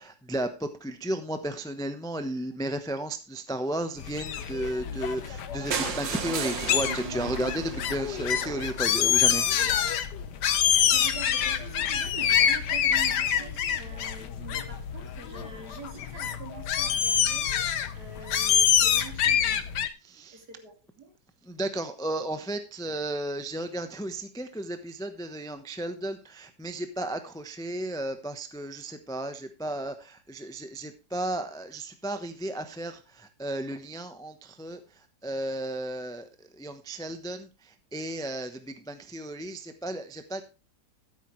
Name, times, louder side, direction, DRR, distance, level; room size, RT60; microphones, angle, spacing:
voice 1, 0.0-9.4 20.0-20.4 21.4-40.4, right 1 dB, 5° left, 8 dB, 0.5 m, -34 dB
sound 1, 4.0-19.9, left 9 dB, 65° left, 1.4 m, -26 dB
sound 2, 5.7-9.6 10.2-10.3 10.6-10.7 11.0-11.1 11.2-11.3, right 7 dB, 75° right, 1.9 m, -35 dB
voice 2, 10.6-19.6 20.3-21.1, right 4 dB, 55° right, 3 dB, 3.0 m, -45 dB
14.5 x 8.4 x 3.2 m, 0.30 s
omnidirectional pair, 2.0 m